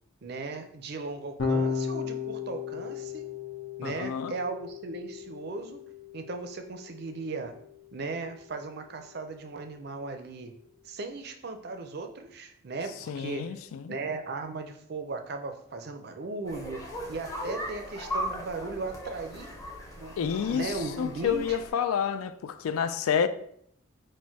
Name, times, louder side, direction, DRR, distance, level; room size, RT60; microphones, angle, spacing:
voice 1, 0.2-3.3 3.8-5.8 6.1-7.5 7.9-10.5 10.8-13.5 13.9-19.5 20.0-21.6, right 3 dB, 50° right, 0.4 m, -37 dB
Electric guitar / Bass guitar, 1.4-7.8, left 5 dB, 65° left, 0.7 m, -35 dB
voice 2, 3.8-4.3 13.1-14.0 20.2-23.3, left 7 dB, 85° left, 0.3 m, -29 dB
sound 1, 16.4-21.7, equal, 15° left, 0.6 m, -38 dB
4.3 x 2.1 x 4.5 m
head